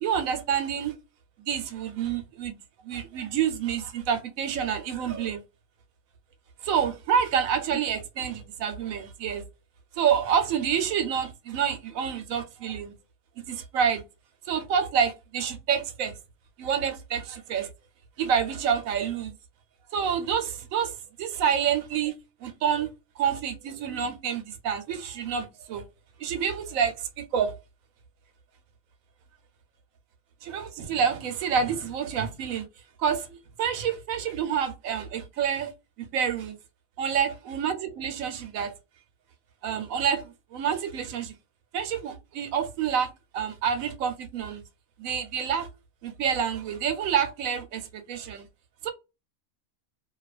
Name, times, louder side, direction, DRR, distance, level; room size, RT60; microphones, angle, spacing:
voice 1, 0.0-0.9 1.5-2.6 2.8-5.4 6.6-9.4 10.0-12.9 13.5-14.0 14.5-16.2 16.6-17.7 18.2-19.3 19.9-22.1 22.4-22.9 23.2-25.8 26.2-27.5 30.4-32.6 33.0-35.7 36.0-36.6 37.0-38.7 39.6-41.3 41.7-44.6 45.0-45.7 46.0-48.5 48.8-48.9, right 7 dB, 75° right, 1.0 m, -28 dB
2.6 x 2.3 x 2.3 m
omnidirectional pair, 1.4 m